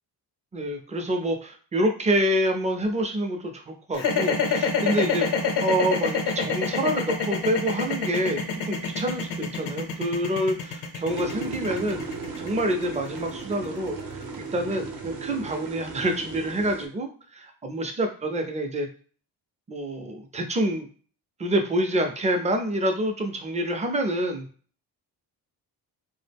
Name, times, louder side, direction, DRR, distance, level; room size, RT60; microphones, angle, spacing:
voice 1, 0.5-14.0 14.4-17.1 17.6-18.9 19.7-20.9 21.4-24.5, right 1 dB, 20° right, 4 dB, 0.4 m, -27 dB
sound 1, 3.9-14.1, left 5 dB, 85° left, 0.7 m, -26 dB
sound 2, 11.1-16.9, right 4 dB, 65° right, 0.7 m, -36 dB
2.3 x 2.0 x 3.3 m, 0.42 s
cardioid pair, 115°, 40 cm